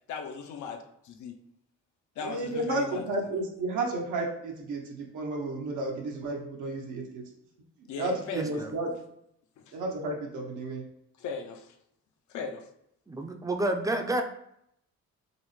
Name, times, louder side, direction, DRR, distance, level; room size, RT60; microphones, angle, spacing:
voice 1, 0.1-1.4 2.2-3.1 7.9-8.7 9.6-9.8 11.2-11.7 12.3-12.7, left 5 dB, 75° left, 5 dB, 0.6 m, -38 dB
voice 2, 2.2-7.3 8.0-8.9 9.7-10.8, right 2 dB, 80° right, -1 dB, 0.9 m, -32 dB
voice 3, 8.3-8.7 13.1-14.2, right 1 dB, 10° right, 4 dB, 0.4 m, -30 dB
5.1 x 2.1 x 3.1 m, 0.74 s
cardioid pair, 90°, 30 cm